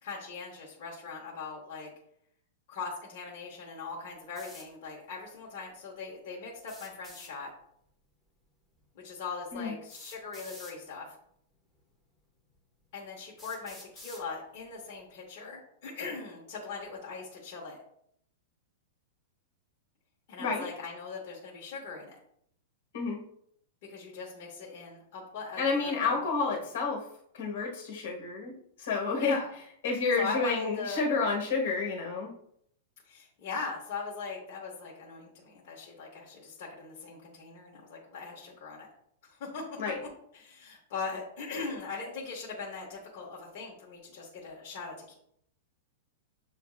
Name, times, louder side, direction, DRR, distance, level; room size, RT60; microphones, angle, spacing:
voice 1, 0.0-1.9 2.7-7.5 8.9-11.1 12.9-17.8 20.3-22.2 23.9-26.2 29.2-29.5 30.2-31.0 33.0-38.9 39.3-45.1, left 4 dB, 40° left, -4 dB, 0.9 m, -40 dB
sound 1, 4.4-4.7 6.6-7.3 8.8-8.9 9.9-10.8 11.8-11.9 12.5-12.6 13.4-14.3, left 1 dB, ahead, 0.6 m, -49 dB
voice 2, 25.6-27.0 27.3-28.5 28.8-29.4 29.8-32.3 39.8-40.0, left 4 dB, 65° left, 1 dB, 1.2 m, -29 dB
6.9 x 2.6 x 2.3 m, 0.69 s
supercardioid pair, 175°, 0 cm